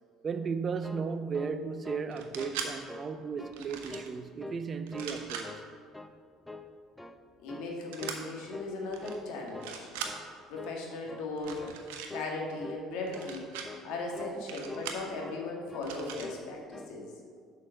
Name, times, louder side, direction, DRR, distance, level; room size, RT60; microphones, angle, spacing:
voice 1, 0.2-5.6, right 5 dB, 40° right, 0.5 m, -35 dB
sound 1, 0.6-2.1 2.4-2.6 2.9-3.6 3.9-4.6 4.9-5.7 5.9-6.2 6.5-7.2 7.5-7.7 8.0-8.3 8.5-9.3 9.5-9.8 10.0-10.3 10.6-10.8 11.1-11.3 11.6-11.8 12.1-12.3 12.6-12.8 13.1-13.3 13.6-13.9 14.1-14.4 14.7-15.4 15.7-15.9 16.2-16.5 16.7-17.0, left 2 dB, 10° left, 0.6 m, -45 dB
sound 2, 2.1-2.7 3.5-4.1 4.9-5.4 7.9-8.2 8.9-9.1 9.5-10.1 11.4-12.1 13.1-13.7 14.5-15.0 15.8-16.3, right 7 dB, 80° right, 0.9 m, -40 dB
voice 2, 7.4-9.9 10.5-11.7 12.1-13.5 13.8-17.1, left 3 dB, 70° left, 1.8 m, -37 dB
6.8 x 5.3 x 6.5 m
hypercardioid pair, 65°, 0 cm